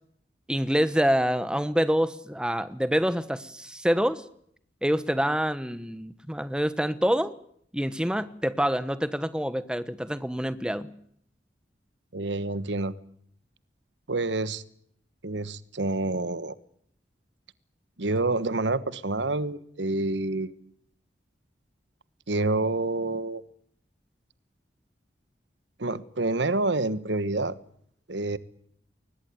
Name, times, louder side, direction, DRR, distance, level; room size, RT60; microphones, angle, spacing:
voice 1, 0.5-4.2 4.8-7.3 7.7-10.9, equal, 5° right, 14 dB, 1.2 m, -26 dB
voice 2, 12.1-12.9 14.1-14.6 15.2-16.6 18.0-20.5 22.3-23.4 25.8-27.5 28.1-28.4, right 2 dB, 90° right, 16 dB, 1.3 m, -28 dB
22.0 x 20.5 x 9.6 m, 0.67 s
head